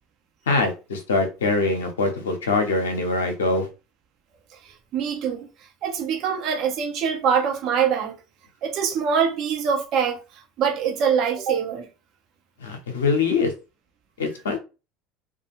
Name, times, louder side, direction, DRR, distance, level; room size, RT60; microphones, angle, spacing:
voice 1, 0.5-3.7 12.6-13.5 14.2-14.6, left 3 dB, 80° left, 0.7 m, -23 dB
voice 2, 4.6-5.5 5.8-8.1 8.6-10.2 10.6-11.9, right 7 dB, 55° right, 0.7 m, -24 dB
2.4 x 2.2 x 2.9 m
hypercardioid pair, 70°, 0 cm